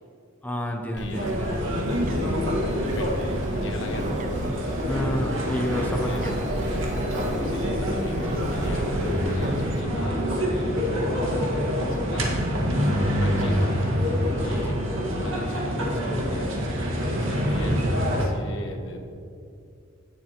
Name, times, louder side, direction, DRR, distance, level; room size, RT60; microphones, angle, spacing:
voice 1, 0.4-1.6 4.9-6.3 14.7-14.8, left 1 dB, 10° left, 2 dB, 0.6 m, -29 dB
voice 2, 0.9-1.8 2.9-3.2 3.5-4.2 5.4-6.3 7.4-11.1 11.8-12.4 13.1-13.8 14.4-14.8 15.2-16.5 16.8-19.0, left 1 dB, 65° left, 3 dB, 1.3 m, -39 dB
Bird, 1.0-9.8, right 2 dB, 40° right, 0.5 m, -34 dB
sound 1, 1.1-18.3, equal, 65° right, 1.6 m, -26 dB
16.5 x 8.1 x 2.9 m, 2.5 s
head